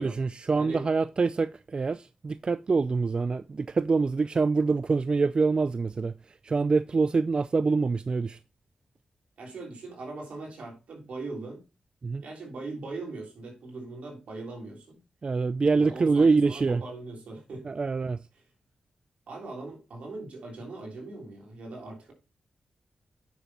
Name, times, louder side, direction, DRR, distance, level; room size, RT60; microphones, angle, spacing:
voice 1, 0.0-8.4 12.0-12.2 15.2-16.8 17.6-18.3, right 4 dB, 45° right, 0.4 m, -25 dB
voice 2, 9.4-11.6 12.2-15.0 15.7-17.8 19.3-22.1, right 3 dB, 70° right, 3.5 m, -40 dB
9.3 x 6.9 x 2.9 m
supercardioid pair, 45°, 2 cm